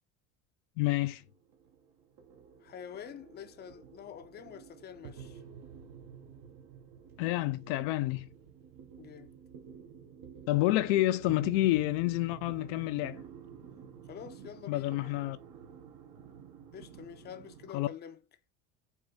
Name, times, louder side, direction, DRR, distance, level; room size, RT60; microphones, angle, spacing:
voice 1, 0.8-1.2 7.2-8.3 10.5-13.2 14.7-15.4 17.7-17.9, left 16 dB, 80° left, 0.6 m, -29 dB
sound 1, 0.9-17.7, right 7 dB, 65° right, 1.1 m, -50 dB
voice 2, 2.6-5.4 9.0-9.3 14.1-14.9 16.7-18.2, left 9 dB, 30° left, 0.5 m, -47 dB
4.5 x 2.5 x 3.8 m
supercardioid pair, 100°, 36 cm